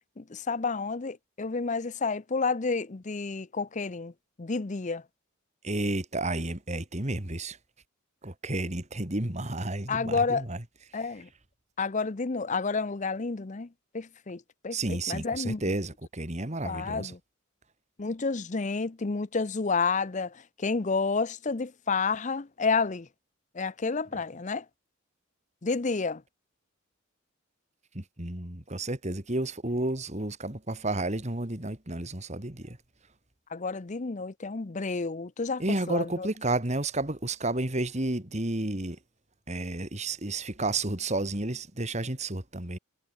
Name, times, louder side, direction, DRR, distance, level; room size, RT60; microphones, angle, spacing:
voice 1, 0.2-4.1 4.4-5.0 9.9-10.5 10.9-11.3 11.8-15.6 16.6-17.2 18.0-23.1 23.5-24.7 25.6-26.2 33.5-36.3, left 4 dB, 35° left, 0.6 m, -30 dB
voice 2, 5.6-7.6 8.2-10.6 14.7-17.1 27.9-32.8 35.6-39.0 39.5-42.8, right 2 dB, 35° right, 2.2 m, -31 dB
head